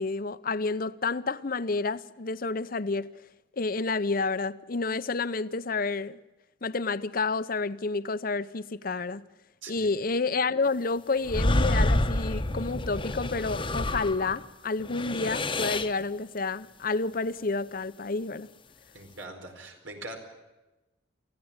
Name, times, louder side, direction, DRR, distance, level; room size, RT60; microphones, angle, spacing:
voice 1, 0.0-3.1 3.5-6.2 6.6-9.2 9.7-18.5, left 3 dB, 50° left, 0.8 m, -30 dB
sound 1, 11.2-14.4 14.8-16.0, left 1 dB, 25° left, 1.0 m, -28 dB
voice 2, 18.9-20.2, right 2 dB, 90° right, 4.6 m, -42 dB
24.5 x 15.5 x 8.9 m
head